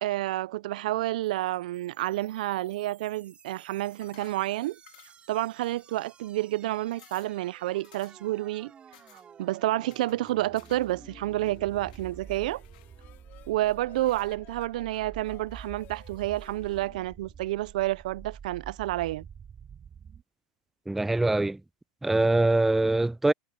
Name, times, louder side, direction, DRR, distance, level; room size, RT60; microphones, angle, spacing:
voice 1, 0.0-4.8 5.3-8.7 9.1-12.6 13.5-19.3, right 16 dB, 75° right, 0.6 m, -29 dB
sound 1, 1.2-20.2, right 7 dB, 25° right, 3.2 m, -49 dB
sound 2, 4.0-4.5 4.9-5.3 5.6-6.2 6.6-6.7 6.9-7.4 7.8-8.3 8.9-9.3 9.9-11.0 11.2-12.1 12.6-13.4 14.0-14.4, left 16 dB, 75° left, 2.8 m, -57 dB
sound 3, 10.3-18.0, left 16 dB, 45° left, 2.4 m, -56 dB
voice 2, 20.9-21.6 22.0-23.3, right 2 dB, 5° right, 0.3 m, -23 dB
hypercardioid pair, 110°, 4 cm